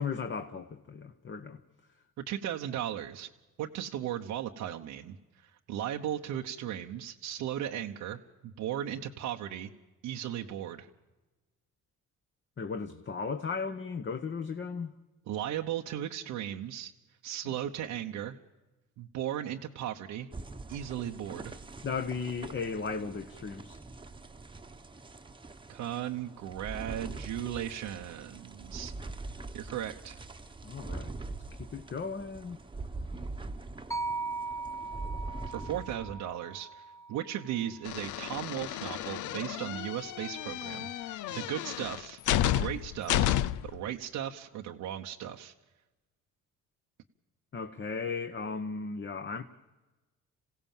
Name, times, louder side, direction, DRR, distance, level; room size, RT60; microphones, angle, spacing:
voice 1, 0.0-1.6 12.6-14.9 21.8-23.8 30.6-31.1 31.6-32.6 47.5-49.4, left 5 dB, 40° left, 1.2 m, -36 dB
voice 2, 2.2-3.3 3.6-9.7 10.0-10.9 15.3-16.9 17.2-18.4 19.0-20.3 20.7-21.6 25.7-28.9 29.5-30.2 35.5-36.8 37.1-43.4 43.6-45.5, right 11 dB, 90° right, 1.0 m, -36 dB
sound 1, 20.3-36.2, right 3 dB, 15° right, 1.1 m, -43 dB
sound 2, 33.9-38.1, right 3 dB, 10° left, 0.8 m, -39 dB
sound 3, 37.8-43.8, left 12 dB, 85° left, 0.6 m, -31 dB
27.5 x 16.5 x 7.4 m
cardioid pair, 90°, 30 cm